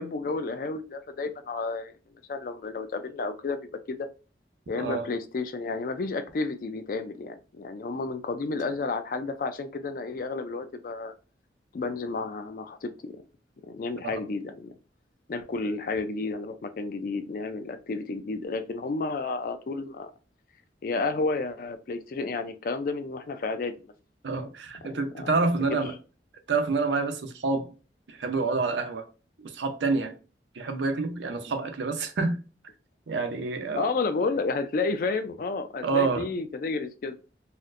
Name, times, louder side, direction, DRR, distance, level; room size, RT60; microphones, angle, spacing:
voice 1, 0.0-1.9 2.3-4.1 4.7-11.1 11.7-13.2 13.6-14.7 15.3-20.1 20.8-23.7 24.8-25.4 25.7-25.8 33.7-37.1, left 3 dB, 50° left, 0.3 m, -31 dB
voice 2, 24.2-25.9 26.5-27.7 28.1-29.1 29.4-30.1 30.5-32.4 33.1-33.9 35.8-36.3, right 3 dB, 90° right, 0.6 m, -27 dB
4.1 x 2.1 x 2.5 m
head